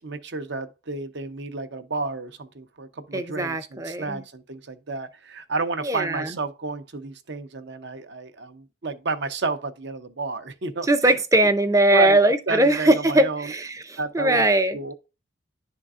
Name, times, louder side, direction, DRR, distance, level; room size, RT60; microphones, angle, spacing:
voice 1, 0.0-11.2 11.9-12.2 12.5-13.5 14.0-14.4 14.7-14.9, right 3 dB, 60° right, 0.7 m, -31 dB
voice 2, 3.1-4.2 5.8-6.3 10.9-14.8, right 1 dB, 15° right, 0.5 m, -20 dB
10.5 x 3.8 x 2.4 m
head